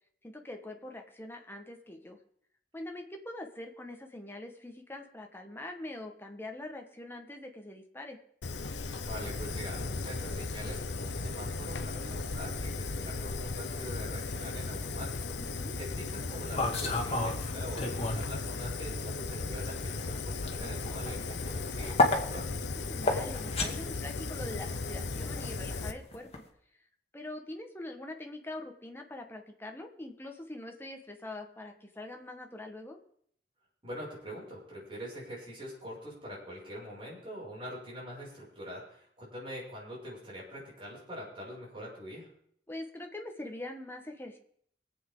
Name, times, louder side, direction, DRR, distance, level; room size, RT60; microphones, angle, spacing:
voice 1, 0.2-2.2 2.7-8.2 12.0-12.1 15.4-15.8 22.7-26.3 27.1-33.0 42.7-44.4, left 1 dB, 15° left, 3 dB, 1.5 m, -43 dB
Fire, 8.4-25.9, left 3 dB, 80° left, 0.9 m, -36 dB
voice 2, 9.0-22.5 33.8-42.3, equal, 30° right, -5 dB, 6.4 m, -44 dB
sound 1, 16.3-18.3 18.6-26.4, left 2 dB, 35° left, 2.0 m, -32 dB
24.0 x 8.4 x 3.8 m, 0.65 s
head